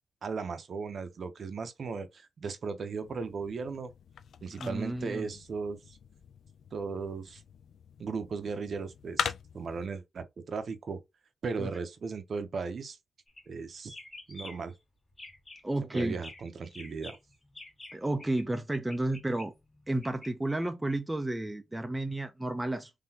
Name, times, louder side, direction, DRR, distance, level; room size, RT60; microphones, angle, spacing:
voice 1, 0.2-3.9 4.4-6.0 6.7-7.4 8.0-11.0 11.4-13.0 13.5-13.9 14.3-14.7 15.9-17.2, right 5 dB, 50° right, 0.7 m, -36 dB
sound 1, 3.0-9.9, left 7 dB, 75° left, 0.4 m, -41 dB
voice 2, 4.6-5.3 11.6-11.7 15.6-16.2 17.9-19.5 19.9-22.9, right 1 dB, 10° right, 0.5 m, -32 dB
sound 2, 13.3-13.5 13.8-14.8 15.1-15.6 15.9-18.4 18.7-20.3, left 2 dB, 20° left, 1.4 m, -48 dB
3.9 x 3.3 x 2.8 m
wide cardioid pair, 150°, 0 cm